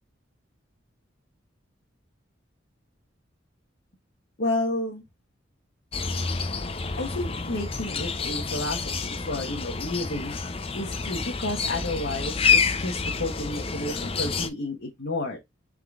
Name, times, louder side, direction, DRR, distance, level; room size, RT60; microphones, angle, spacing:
voice 1, 4.4-5.0 7.0-10.3 10.7-15.4, left 2 dB, 60° left, 1.1 m, -31 dB
sound 1, 5.9-14.5, left 5 dB, 30° left, 0.5 m, -28 dB
3.7 x 3.7 x 3.5 m
head